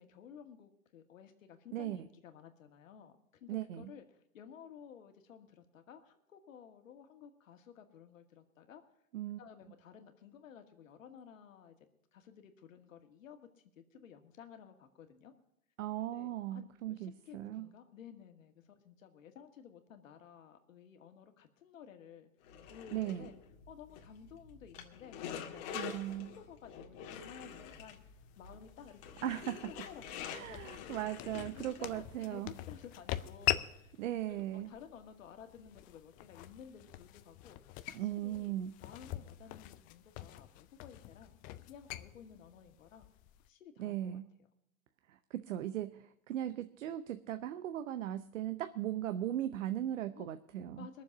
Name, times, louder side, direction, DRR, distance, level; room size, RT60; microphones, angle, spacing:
voice 1, 0.0-8.8 9.4-11.9 12.1-13.5 13.8-15.3 16.0-22.3 22.7-23.3 23.7-25.8 26.1-29.3 29.6-31.1 31.6-33.9 34.3-37.6 37.9-38.5 38.8-41.4 41.7-43.1 43.4-44.2 50.1-50.3 50.8-51.0, left 8 dB, 70° left, 6 dB, 2.0 m, -54 dB
voice 2, 3.5-3.9 9.1-9.4 15.8-17.7 22.9-23.3 25.7-26.3 29.2-29.7 30.3-32.5 34.0-34.7 37.9-38.7 43.8-44.3 45.1-50.9, right 12 dB, 65° right, 11 dB, 0.8 m, -38 dB
sound 1, 22.4-32.2, left 8 dB, 45° left, 1.9 m, -47 dB
sound 2, 27.4-43.5, left 14 dB, 20° left, 0.4 m, -43 dB
21.0 x 7.2 x 6.1 m, 0.81 s
hypercardioid pair, 115°, 41 cm